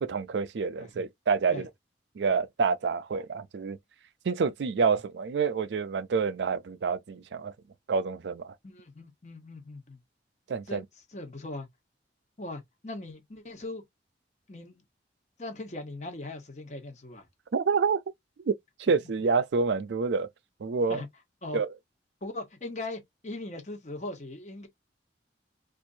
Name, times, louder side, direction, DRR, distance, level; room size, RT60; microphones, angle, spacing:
voice 1, 0.0-1.7 2.2-3.8 4.3-7.5 7.9-8.5 10.5-10.8 17.5-18.0 18.5-18.6 18.8-20.3 20.6-21.0 21.5-21.7, right 5 dB, 75° right, 0.4 m, -27 dB
voice 2, 8.6-10.0 10.7-10.8 11.1-11.7 12.4-13.8 14.5-14.8 15.4-17.3 20.9-21.1 21.4-21.6 22.2-24.7, left 2 dB, 40° left, 1.2 m, -39 dB
4.4 x 2.5 x 2.6 m
head